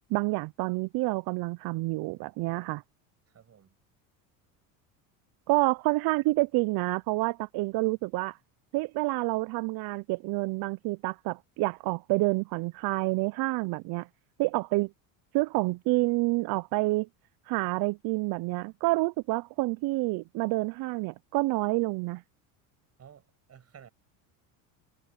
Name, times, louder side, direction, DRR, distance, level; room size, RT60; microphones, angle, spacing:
voice 1, 0.1-2.8 5.5-8.4 8.7-14.1 14.4-14.9 15.3-17.1 17.5-22.2, right 23 dB, 55° right, 0.6 m, -28 dB
voice 2, 3.3-3.8 23.0-23.9, right 8 dB, 35° right, 6.8 m, -53 dB
supercardioid pair, 110°, 43 cm